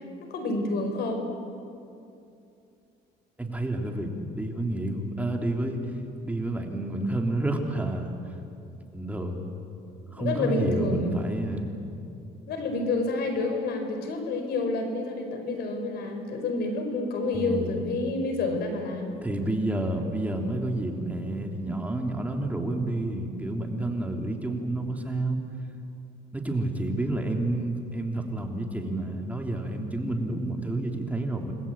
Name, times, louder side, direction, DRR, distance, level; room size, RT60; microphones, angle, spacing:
voice 1, 0.3-1.3 10.2-11.1 12.5-19.2, left 2 dB, 75° left, 5 dB, 5.1 m, -28 dB
voice 2, 3.4-5.8 6.2-8.2 8.9-9.4 10.1-11.7 17.3-17.8 19.2-25.4 26.3-31.5, right 2 dB, 10° right, 2 dB, 3.1 m, -29 dB
29.0 x 21.0 x 8.7 m, 2.6 s
cardioid pair, 110°, 17 cm